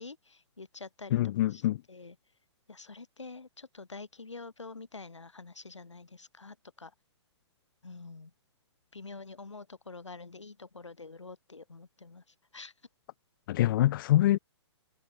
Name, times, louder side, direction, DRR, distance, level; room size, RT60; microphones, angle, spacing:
voice 1, 0.0-1.2 1.5-1.6 1.9-2.2 2.7-6.9 7.8-8.3 8.9-12.2 12.5-12.7, left 3 dB, 85° left, 7.1 m, -46 dB
voice 2, 1.1-1.8 13.5-14.4, left 14 dB, 50° left, 0.7 m, -25 dB
figure-of-eight pair, 120°, 15 cm